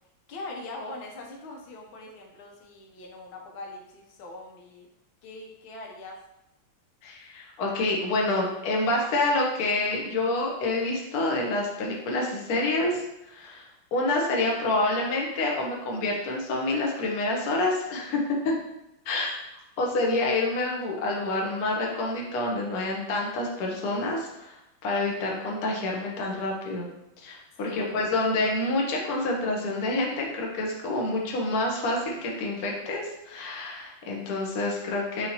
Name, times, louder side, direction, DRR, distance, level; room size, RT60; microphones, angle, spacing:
voice 1, 0.3-4.9 5.2-6.2 27.6-28.0, left 2 dB, 90° left, 0 dB, 1.6 m, -42 dB
voice 2, 7.0-13.0 13.3-18.5 19.1-19.3 19.8-26.9 27.2-35.3, left 2 dB, 60° left, -1 dB, 1.2 m, -27 dB
6.5 x 2.8 x 2.8 m, 0.84 s
omnidirectional pair, 2.1 m